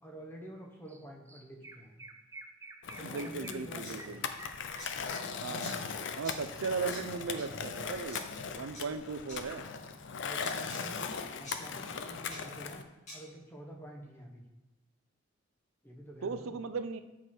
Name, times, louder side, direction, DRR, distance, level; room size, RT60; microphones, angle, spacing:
voice 1, 0.0-2.0 2.9-4.3 10.2-14.5 15.8-16.6, right 1 dB, 10° left, 0 dB, 1.0 m, -48 dB
Chirp tweet, 0.9-1.0 1.3-5.9, right 2 dB, 15° right, 0.4 m, -50 dB
Skateboard, 2.8-12.8, left 5 dB, 60° left, 0.5 m, -39 dB
voice 2, 3.0-4.2 5.4-5.8 6.2-8.3 8.5-9.7 16.2-17.0, right 4 dB, 80° right, 10 dB, 0.5 m, -37 dB
sound 1, 3.8-3.9 4.8-4.9 5.6-5.7 6.2-6.4 6.9-7.0 7.4-7.5 8.1-8.2 8.7-8.8 9.3-9.4 10.4-10.8 11.4-11.6 12.3-12.4 13.1-13.2, equal, 35° left, 2.2 m, -45 dB
8.0 x 4.8 x 4.4 m, 1.0 s
head